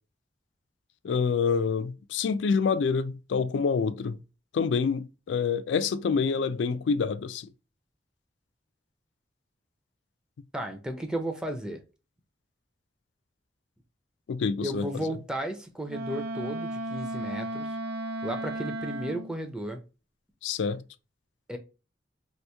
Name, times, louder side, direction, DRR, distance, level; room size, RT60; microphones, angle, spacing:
voice 1, 1.0-4.2 4.5-7.5 14.3-14.9 20.4-20.8, left 5 dB, 80° left, 0.3 m, -27 dB
voice 2, 10.5-11.8 14.6-17.8 18.2-19.8 21.5-21.6, right 1 dB, 5° right, 0.4 m, -34 dB
Wind instrument woodwind instrument, 15.9-19.3, right 1 dB, 60° right, 0.5 m, -34 dB
2.9 x 2.6 x 3.3 m
head